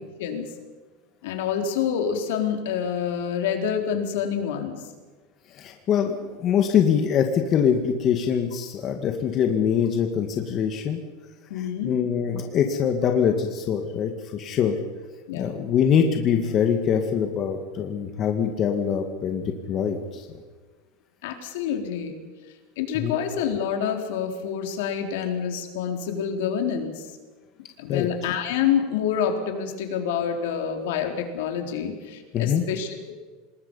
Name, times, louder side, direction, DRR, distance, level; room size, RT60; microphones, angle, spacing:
voice 1, 1.2-4.8 11.5-11.9 15.3-15.7 21.2-22.1 22.8-27.0 27.8-33.1, left 8 dB, 75° left, 4 dB, 3.9 m, -27 dB
voice 2, 5.5-11.0 11.8-14.8 15.3-20.3 23.0-23.2 27.9-28.1 32.3-32.6, left 8 dB, 30° left, 4 dB, 1.8 m, -23 dB
27.0 x 20.0 x 5.6 m, 1.4 s
supercardioid pair, 160°, 0 cm